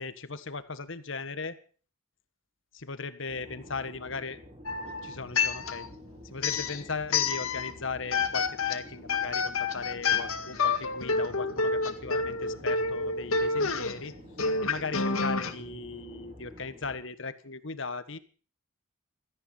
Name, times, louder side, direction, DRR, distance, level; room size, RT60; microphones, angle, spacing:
voice 1, 0.0-1.6 2.7-4.4 5.0-5.9 6.2-14.1 14.6-18.2, left 4 dB, 65° left, 12 dB, 1.5 m, -37 dB
sound 1, 3.3-17.0, left 1 dB, 25° right, 4.6 m, -49 dB
sound 2, 4.7-6.0 6.4-7.8 8.1-15.5, left 4 dB, 90° left, 1.9 m, -29 dB
17.0 x 14.0 x 5.7 m, 0.41 s
head